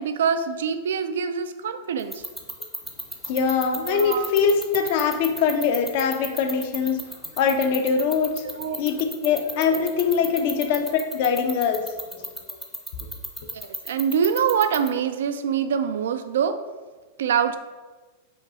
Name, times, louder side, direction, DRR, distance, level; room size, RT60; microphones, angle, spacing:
voice 1, 0.0-2.2 3.9-4.5 6.3-6.4 8.4-8.8 13.5-16.6 17.2-17.6, right 7 dB, 85° right, 10 dB, 0.3 m, -25 dB
sound 1, 2.0-14.9, equal, ahead, 0.5 m, -31 dB
voice 2, 3.3-7.0 7.4-11.9 12.2-12.3, left 6 dB, 60° left, 7 dB, 0.5 m, -23 dB
5.2 x 2.3 x 4.0 m, 1.3 s
supercardioid pair, 130°, 0 cm